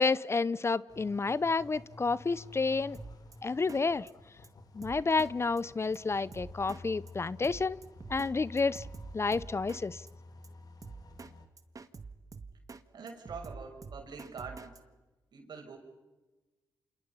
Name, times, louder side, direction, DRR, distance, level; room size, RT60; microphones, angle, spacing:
voice 1, 0.0-3.0 3.4-4.1 4.7-7.8 8.1-8.8 9.1-10.0, left 4 dB, 35° left, 19 dB, 0.8 m, -30 dB
sound 1, 0.9-11.5, left 2 dB, 55° left, 3.1 m, -51 dB
Drum kit, 2.9-3.4 3.7-4.1 4.4-4.5 4.8-5.3 5.6-5.7 5.9-6.0 6.3-6.8 7.1-7.2 7.4-8.3 8.6-9.8 10.1-10.2 10.4-10.5 10.8-11.3 11.6-12.8 13.1-14.8, right 4 dB, 45° right, 1.8 m, -46 dB
voice 2, 12.9-14.8 15.3-15.8, right 5 dB, 65° right, 4 dB, 6.1 m, -44 dB
29.5 x 26.5 x 5.7 m, 1.1 s
supercardioid pair, 55°, 8 cm